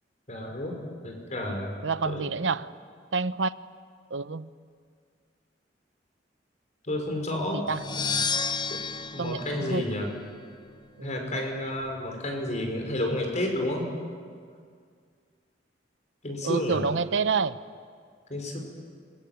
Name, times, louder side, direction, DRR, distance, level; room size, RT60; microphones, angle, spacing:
voice 1, 0.3-0.7 1.0-1.7 2.1-2.3 6.8-7.6 8.7-8.8 9.1-10.1 11.0-13.8 16.2-16.8 18.3-18.6, left 1 dB, 40° left, 2 dB, 5.7 m, -30 dB
voice 2, 1.8-2.7 3.1-3.6 4.1-4.5 7.5-7.8 9.2-9.8 11.0-11.4 16.4-17.6, right 4 dB, 85° right, 14 dB, 0.7 m, -28 dB
sound 1, 7.7-10.5, left 5 dB, 25° left, 0.9 m, -32 dB
26.5 x 22.0 x 9.5 m, 2.1 s
head